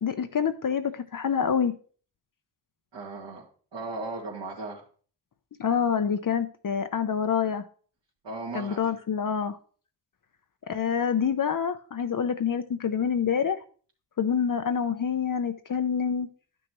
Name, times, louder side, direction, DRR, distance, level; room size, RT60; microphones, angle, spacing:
voice 1, 0.0-1.7 5.6-7.7 8.5-9.6 10.7-13.6 14.2-16.3, left 7 dB, 45° left, 8 dB, 0.7 m, -26 dB
voice 2, 2.9-3.4 3.7-4.8 8.2-8.9, right 3 dB, 65° right, -5 dB, 2.3 m, -36 dB
11.0 x 6.2 x 3.0 m, 0.43 s
cardioid pair, 65°, 45 cm